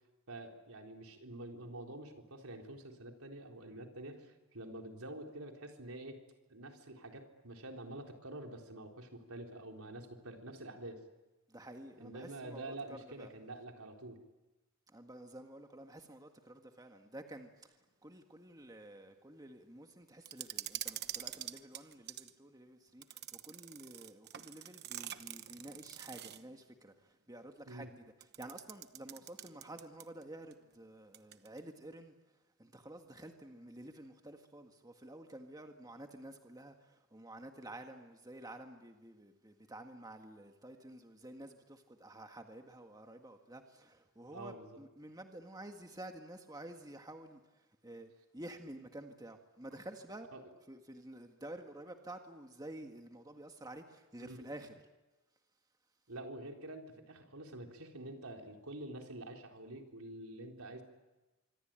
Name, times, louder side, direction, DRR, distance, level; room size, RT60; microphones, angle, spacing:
voice 1, 0.3-6.2 6.5-11.0 12.0-14.2 27.7-27.9 44.3-44.8 50.3-50.4 54.2-54.4 56.1-60.8, right 1 dB, 85° right, 2 dB, 4.0 m, -47 dB
voice 2, 11.5-13.3 14.9-17.8 18.0-27.9 28.4-32.1 32.6-50.3 50.7-54.7, right 1 dB, 15° right, 5 dB, 1.7 m, -51 dB
sound 1, 20.3-22.3 23.0-26.5 28.2-30.2 30.5-30.6 31.1-31.6, right 12 dB, 50° right, 1.0 m, -45 dB
26.0 x 24.5 x 9.0 m, 1.1 s
head